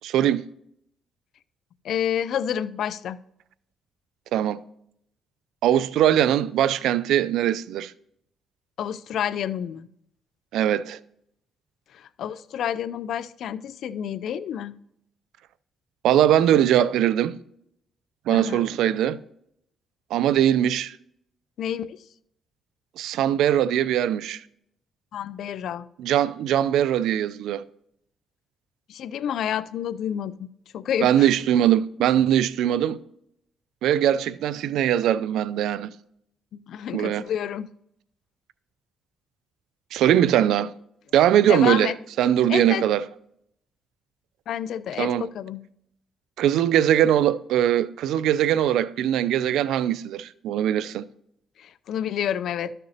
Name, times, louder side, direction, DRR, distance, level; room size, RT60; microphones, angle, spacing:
voice 1, 0.0-0.4 4.3-4.6 5.6-7.9 10.5-11.0 16.0-17.4 18.3-19.2 20.1-21.0 23.0-24.4 26.0-27.6 31.0-33.0 33.8-35.9 36.9-37.2 39.9-40.7 41.1-41.9 42.2-43.0 45.0-45.3 46.4-51.0, right 11 dB, 85° right, 0.4 m, -21 dB
voice 2, 1.8-3.2 8.8-9.9 11.9-14.7 18.3-18.6 21.6-22.0 25.1-25.8 28.9-30.5 30.7-31.3 36.7-37.7 41.5-41.9 42.5-42.8 44.5-45.6 51.6-52.7, left 9 dB, 70° left, 0.4 m, -29 dB
12.5 x 6.7 x 2.8 m
cardioid pair, 90°, 0 cm